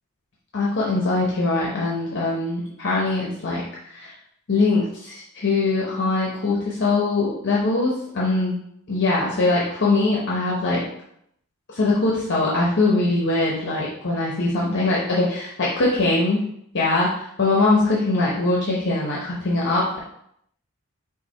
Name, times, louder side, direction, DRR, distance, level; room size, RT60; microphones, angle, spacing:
voice 1, 0.5-3.6 3.9-4.1 4.5-8.6 8.9-10.8 11.7-16.4 16.7-17.1 17.4-20.0, left 2 dB, 55° left, -5 dB, 0.8 m, -22 dB
5.6 x 2.1 x 4.3 m, 0.73 s
head